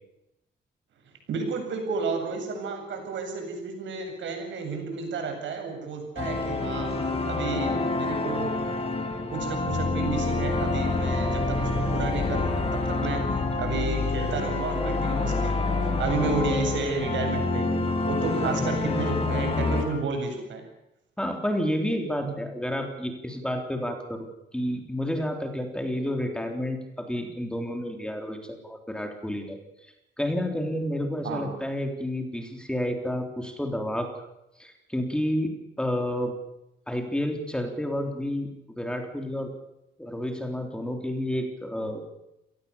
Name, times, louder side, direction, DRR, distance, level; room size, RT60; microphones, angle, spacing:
voice 1, 1.3-6.9 7.3-8.5 9.3-13.2 13.6-20.6 22.2-22.4 31.2-31.4, right 4 dB, 90° right, 4 dB, 7.8 m, -32 dB
sound 1, 6.2-19.8, left 3 dB, 30° left, 5.3 m, -27 dB
voice 2, 21.2-24.3 24.5-29.6 30.2-34.1 34.6-36.3 36.9-38.5 38.8-39.5 40.0-42.0, left 1 dB, 5° left, 4 dB, 3.6 m, -30 dB
28.5 x 19.0 x 7.1 m, 0.88 s
wide cardioid pair, 155°, 19 cm